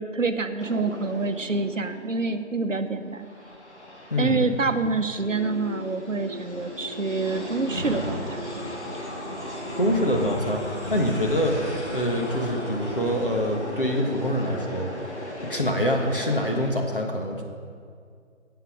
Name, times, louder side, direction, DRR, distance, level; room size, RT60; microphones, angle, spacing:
voice 1, 0.0-3.3 4.2-8.4, right 3 dB, 70° right, 9 dB, 1.0 m, -27 dB
sound 1, 0.6-2.4 2.9-16.7, left 1 dB, 60° left, 2.0 m, -38 dB
voice 2, 4.1-4.5 9.8-11.5 11.9-17.4, equal, 40° left, 1 dB, 1.5 m, -25 dB
sound 2, 5.2-14.2, left 1 dB, 40° right, 1.2 m, -41 dB
sound 3, 7.1-13.4, right 1 dB, 10° right, 2.8 m, -36 dB
14.5 x 8.3 x 5.1 m, 2.2 s
figure-of-eight pair, 180°, 39 cm